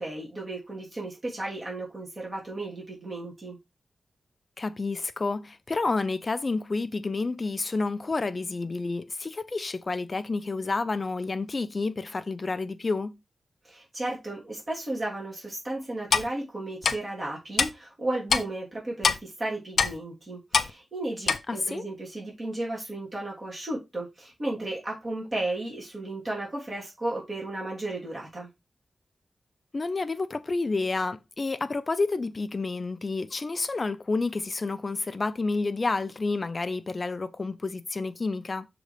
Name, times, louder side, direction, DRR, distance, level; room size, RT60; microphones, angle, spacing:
voice 1, 0.0-3.6 13.6-28.5, right 2 dB, 35° right, 3.4 m, -34 dB
voice 2, 4.6-13.2 21.5-21.8 29.7-38.7, left 3 dB, 35° left, 0.6 m, -29 dB
Clock, 16.1-16.3 16.8-16.9 17.6-17.7 18.3-18.4 19.0-19.2 19.8-19.9 20.5-20.7 21.3-21.4, left 5 dB, 75° left, 0.7 m, -22 dB
6.6 x 3.9 x 4.9 m
wide cardioid pair, 150°, 0 cm